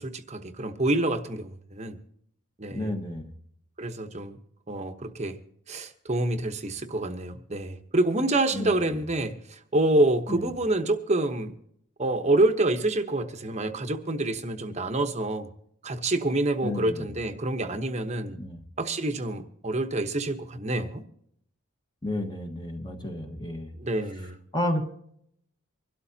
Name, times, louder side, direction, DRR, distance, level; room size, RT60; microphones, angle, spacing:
voice 1, 0.0-2.0 2.6-2.9 3.8-4.4 4.7-5.4 5.7-11.5 12.0-15.5 15.8-18.4 18.8-21.0 23.8-24.4, right 2 dB, 30° right, 8 dB, 1.0 m, -27 dB
voice 2, 2.7-3.3 8.5-9.0 10.3-10.4 16.6-17.1 18.4-18.6 22.0-23.7 24.5-24.8, left 1 dB, 20° left, 2 dB, 1.4 m, -31 dB
25.0 x 12.5 x 2.8 m, 0.70 s
head